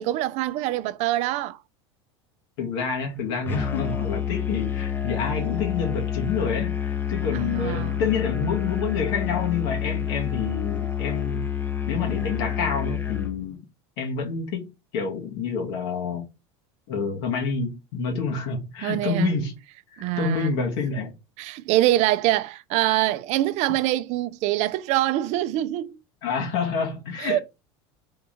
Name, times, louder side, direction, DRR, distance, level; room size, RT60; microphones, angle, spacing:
voice 1, 0.0-1.6 7.3-8.0 18.8-19.3 20.0-20.5 21.4-26.0 27.2-27.4, right 15 dB, 50° right, 0.4 m, -24 dB
voice 2, 2.6-6.8 7.1-11.5 11.9-13.6 14.0-16.2 16.9-19.5 19.9-21.1 26.2-27.4, left 5 dB, 70° left, 1.2 m, -28 dB
Musical instrument, 3.5-13.4, left 9 dB, 15° left, 0.6 m, -28 dB
3.5 x 3.0 x 3.5 m
supercardioid pair, 120°, 15 cm